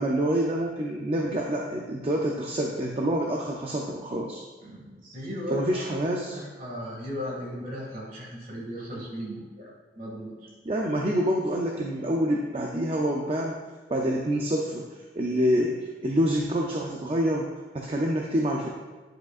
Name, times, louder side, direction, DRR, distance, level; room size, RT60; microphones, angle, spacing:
voice 1, 0.0-4.4 5.5-6.4 10.7-13.6 13.9-14.8 15.2-18.7, equal, 35° right, 0 dB, 0.5 m, -27 dB
voice 2, 4.6-10.5, left 1 dB, 50° right, -3 dB, 2.1 m, -37 dB
10.5 x 4.9 x 2.5 m, 1.3 s
head